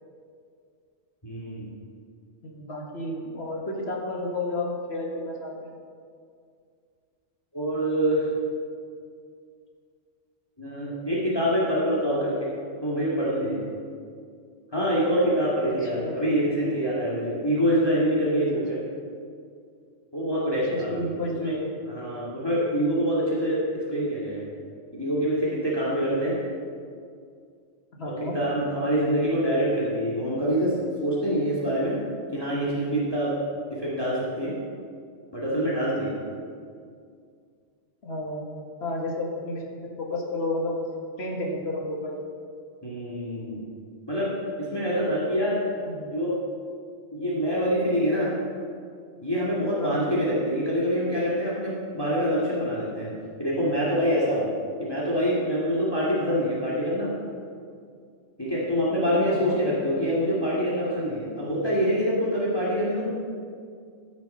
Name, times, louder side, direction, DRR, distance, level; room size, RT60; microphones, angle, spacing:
voice 1, 1.2-1.7 7.5-8.6 10.6-12.5 12.8-13.6 14.7-18.8 20.1-21.0 21.4-21.5 21.9-24.5 24.9-26.4 28.3-30.7 31.0-32.0 32.3-33.3 33.7-34.6 35.3-36.1 42.8-43.6 44.1-44.3 44.6-45.6 46.1-46.4 47.1-48.3 49.2-53.1 53.4-54.5 54.8-57.1 58.4-63.1, equal, 20° left, -7 dB, 1.9 m, -25 dB
voice 2, 2.4-5.8 15.8-16.2 18.7-18.8 20.7-21.8 28.0-28.4 38.0-38.4 38.8-40.8 41.2-42.2 45.8-46.2 49.8-50.3 59.3-59.6, left 1 dB, 60° left, -1 dB, 1.9 m, -32 dB
14.0 x 6.4 x 5.4 m, 2.2 s
omnidirectional pair, 1.2 m